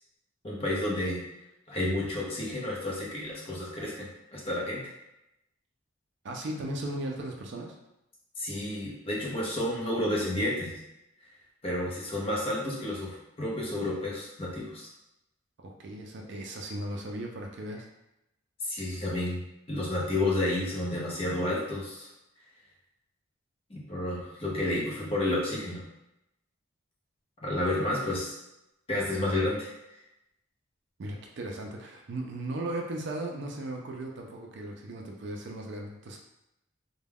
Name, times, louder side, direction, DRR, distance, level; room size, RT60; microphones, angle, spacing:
voice 1, 0.4-1.2 1.7-4.9 8.4-10.8 11.6-14.9 18.6-22.1 23.7-25.8 27.4-28.3 28.9-29.7, left 1 dB, 25° left, -4 dB, 0.6 m, -31 dB
voice 2, 6.2-7.7 15.6-17.9 31.0-36.2, right 1 dB, 55° right, 1 dB, 0.4 m, -37 dB
2.2 x 2.2 x 3.4 m, 0.89 s
head